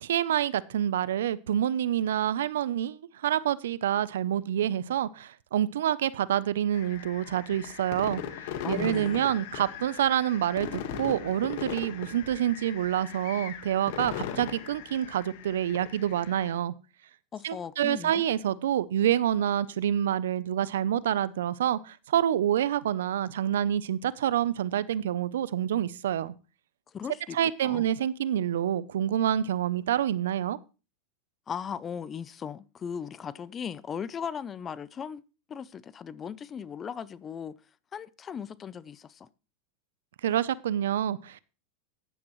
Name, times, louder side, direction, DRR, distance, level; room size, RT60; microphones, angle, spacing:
voice 1, 0.0-8.2 8.7-16.7 17.4-26.3 27.3-30.6 40.2-41.4, right 10 dB, 85° right, 0.6 m, -27 dB
sound 1, 6.7-16.5, left 9 dB, 65° left, 1.6 m, -39 dB
voice 2, 8.6-9.3 17.3-18.1 26.9-27.4 27.6-27.9 31.5-35.2 35.5-37.6 37.9-39.3, left 7 dB, 25° left, 0.5 m, -37 dB
14.5 x 10.0 x 3.1 m
supercardioid pair, 130°, 0 cm